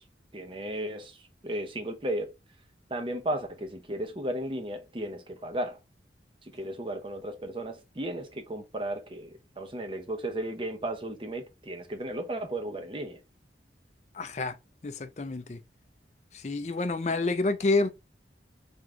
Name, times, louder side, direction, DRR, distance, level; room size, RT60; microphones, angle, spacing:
voice 1, 0.3-1.2 1.4-2.3 2.9-5.8 6.5-13.2, right 1 dB, 30° right, 0.7 m, -34 dB
voice 2, 14.1-14.5 14.8-15.6 16.3-17.9, left 3 dB, 40° left, 0.4 m, -28 dB
3.5 x 3.2 x 3.7 m
head